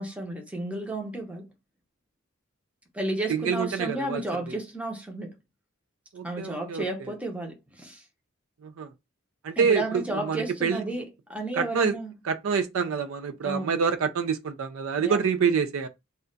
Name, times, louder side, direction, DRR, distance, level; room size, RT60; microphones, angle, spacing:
voice 1, 0.0-1.5 2.9-5.3 6.2-8.0 9.6-12.1 13.4-13.8 15.0-15.2, right 1 dB, 5° right, 0.6 m, -32 dB
voice 2, 3.3-4.2 6.1-7.1 8.6-8.9 9.4-10.8 11.5-11.9 12.2-15.9, right 6 dB, 75° right, 0.4 m, -27 dB
2.3 x 2.2 x 3.8 m
head